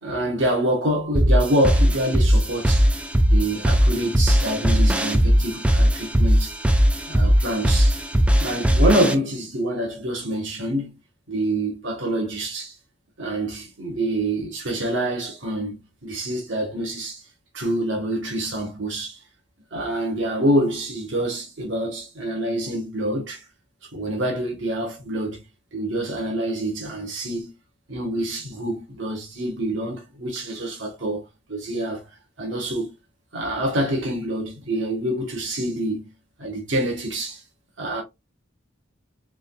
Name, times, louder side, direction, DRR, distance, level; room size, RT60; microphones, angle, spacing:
voice 1, 0.0-2.9 3.2-6.6 7.1-8.0 8.4-11.0 11.3-12.7 13.2-17.2 17.5-19.2 19.7-23.4 23.9-25.4 25.7-27.5 27.9-32.1 32.4-32.9 33.3-36.1 36.4-37.4 37.8-38.0, right 1 dB, 80° right, 1.6 m, -26 dB
sound 1, 1.1-9.1, equal, 5° right, 0.3 m, -19 dB
3.9 x 3.8 x 2.3 m
head